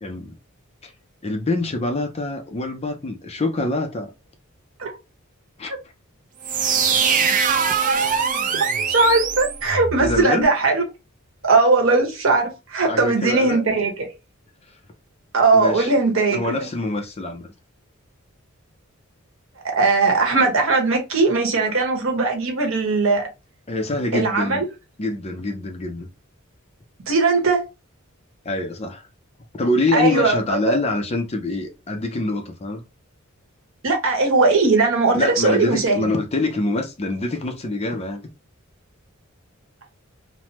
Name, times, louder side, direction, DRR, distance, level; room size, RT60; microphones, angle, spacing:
voice 1, 0.0-0.3 0.8-0.9 1.2-4.1 5.6-5.7 10.0-10.5 12.8-13.6 15.5-15.9 16.3-17.5 23.7-24.7 25.0-26.1 28.5-29.1 29.6-32.8 35.1-38.2, left 2 dB, 30° left, 0.5 m, -25 dB
sound 1, 6.4-10.2, right 6 dB, 40° right, 0.4 m, -22 dB
voice 2, 8.7-10.8 11.4-14.1 15.3-16.5 19.7-23.3 24.1-24.6 27.1-27.6 29.9-30.4 30.7-30.8 33.8-36.1, right 3 dB, 70° right, 1.0 m, -19 dB
3.1 x 2.1 x 2.9 m
head